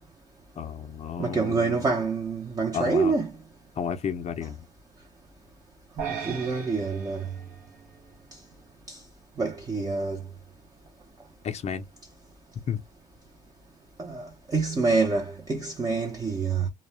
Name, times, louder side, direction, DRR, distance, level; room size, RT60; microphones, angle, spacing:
voice 1, 0.6-1.9 2.7-3.2 3.8-4.7 11.4-11.9 12.5-12.8, left 7 dB, 40° left, 0.5 m, -32 dB
voice 2, 1.2-3.3 6.0-7.3 8.9-9.0 9.4-10.2 14.0-16.7, right 4 dB, 20° right, 0.5 m, -27 dB
sound 1, 6.0-8.5, right 7 dB, 65° right, 0.8 m, -38 dB
2.2 x 2.0 x 3.1 m
cardioid pair, 110°, 17 cm